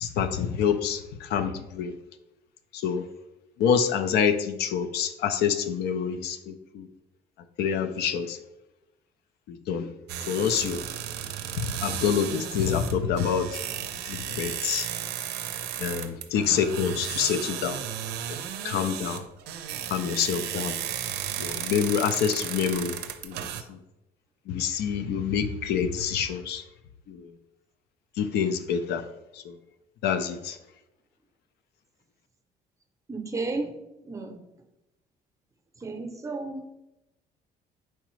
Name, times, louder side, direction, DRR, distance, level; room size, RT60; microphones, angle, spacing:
voice 1, 0.0-1.9 2.7-3.0 3.6-6.9 7.6-8.4 9.5-9.9 10.3-10.8 11.6-13.5 14.1-14.9 15.8-17.8 18.6-19.2 19.9-20.8 21.4-23.0 23.2-23.8 24.5-26.6 27.1-27.3 28.2-29.0 29.3-29.5 30.0-30.6, left 7 dB, 75° left, 9 dB, 0.4 m, -27 dB
sound 1, 10.1-23.6, right 10 dB, 80° right, 0.5 m, -34 dB
voice 2, 33.1-33.7 34.0-34.4 35.8-36.6, right 3 dB, 20° right, 5 dB, 0.6 m, -32 dB
4.5 x 3.8 x 3.1 m, 0.94 s
cardioid pair, 110°, 17 cm